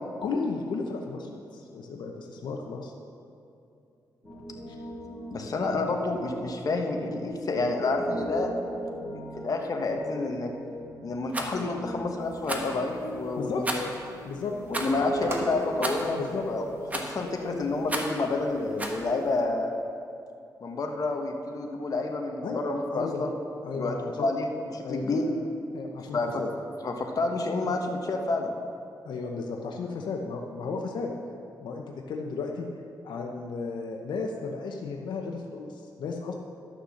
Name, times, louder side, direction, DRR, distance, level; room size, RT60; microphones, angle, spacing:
voice 1, 0.2-2.9 4.7-4.8 5.8-5.9 13.4-13.7 14.2-14.5 16.1-16.5 22.4-22.6 22.9-23.3 23.6-24.3 24.8-25.4 25.7-26.5 29.0-31.1 31.6-32.7 33.0-36.3, left 4 dB, 90° left, 2 dB, 0.9 m, -34 dB
Piano, 4.2-17.9, right 1 dB, 15° left, 3.0 m, -39 dB
voice 2, 5.3-8.5 9.0-10.5 11.0-13.9 14.7-16.2 16.4-16.6 16.9-19.7 20.6-23.4 23.8-25.3 26.1-26.3 26.8-28.5, left 3 dB, 55° left, 2 dB, 1.2 m, -29 dB
Rattle, 11.3-11.5 12.4-12.7 13.6-14.0 14.7-15.0 15.8-16.1 16.9-17.2 17.9-18.2 18.8-19.0, right 1 dB, 20° right, 1.3 m, -32 dB
sound 1, 12.2-19.4, right 1 dB, 35° right, 1.6 m, -47 dB
11.5 x 6.6 x 6.4 m, 2.6 s
cardioid pair, 100°, 8 cm